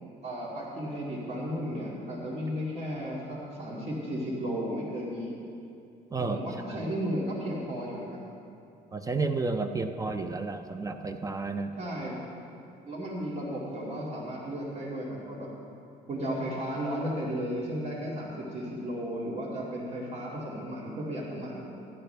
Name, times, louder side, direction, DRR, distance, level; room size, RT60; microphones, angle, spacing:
voice 1, 0.2-5.3 6.2-8.2 11.8-12.2 12.9-15.5 16.1-21.6, equal, 40° right, -5 dB, 2.4 m, -34 dB
voice 2, 8.9-11.7, right 3 dB, 20° right, 7 dB, 0.6 m, -31 dB
14.5 x 12.0 x 3.4 m, 2.5 s
cardioid pair, 110°, 17 cm